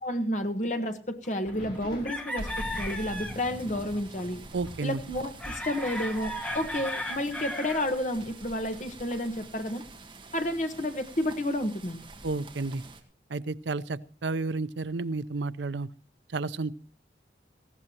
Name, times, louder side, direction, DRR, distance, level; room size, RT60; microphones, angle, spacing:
voice 1, 0.0-4.4 4.8-9.8 10.3-12.0, left 1 dB, 45° left, 7 dB, 1.4 m, -31 dB
sound 1, 1.2-1.8 2.1-3.4 3.7-4.2 4.7-4.8 4.9-7.9 8.6-8.7 8.9-9.0, left 1 dB, 5° left, 1.4 m, -36 dB
sound 2, 1.4-5.6 5.9-6.3 6.9-7.0 7.7-10.4 12.3-12.8, equal, 70° left, 5.2 m, -49 dB
sound 3, 2.4-13.0, right 1 dB, 30° right, 1.9 m, -44 dB
voice 2, 4.5-5.0 12.2-12.8 13.3-15.9 16.3-16.7, right 3 dB, 85° right, 15 dB, 0.6 m, -31 dB
18.5 x 15.5 x 2.9 m, 0.35 s
head